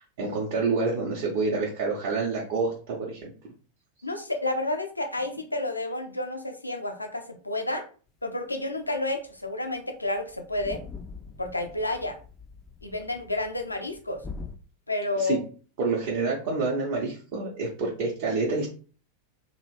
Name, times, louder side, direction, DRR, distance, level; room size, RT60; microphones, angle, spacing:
voice 1, 0.0-3.3 15.2-15.4 15.8-18.7, right 3 dB, 50° right, -4 dB, 0.7 m, -28 dB
voice 2, 4.0-7.8 8.2-10.8 11.4-12.2 12.8-14.2 14.9-15.4, left 2 dB, 85° left, 5 dB, 0.5 m, -30 dB
sound 1, 8.9-9.0 9.3-9.5 9.8-9.9 10.1-14.6, left 4 dB, 15° left, 0.3 m, -43 dB
3.0 x 2.4 x 3.0 m, 0.39 s
figure-of-eight pair, 90°, 0 cm